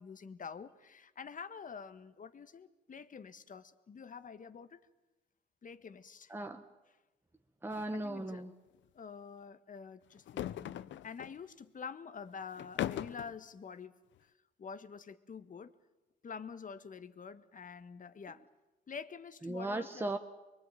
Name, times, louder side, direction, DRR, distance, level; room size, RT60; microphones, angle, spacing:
voice 1, 0.0-4.8 5.6-6.3 7.9-8.5 8.9-13.9 14.2-14.3 14.6-15.7 16.2-18.4 18.9-20.2, left 6 dB, 40° left, 11 dB, 1.5 m, -47 dB
voice 2, 6.3-6.7 7.6-8.5 19.4-20.2, right 2 dB, 10° right, 5 dB, 1.4 m, -37 dB
sound 1, 7.7-7.9 8.2-8.3 10.2-11.4 12.6-13.3, left 12 dB, 70° left, 0.8 m, -39 dB
24.5 x 23.0 x 9.1 m, 1.1 s
cardioid pair, 90°, 20 cm